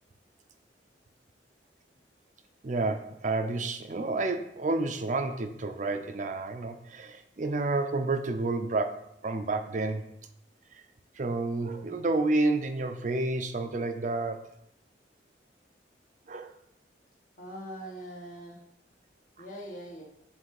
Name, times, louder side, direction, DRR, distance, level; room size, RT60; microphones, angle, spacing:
voice 1, 2.6-10.1 11.2-14.5 16.3-16.5 19.4-19.5, right 2 dB, 45° right, 6 dB, 0.6 m, -30 dB
voice 2, 17.4-18.6 19.4-20.0, equal, 50° left, -2 dB, 1.7 m, -42 dB
7.5 x 3.4 x 4.8 m, 0.72 s
head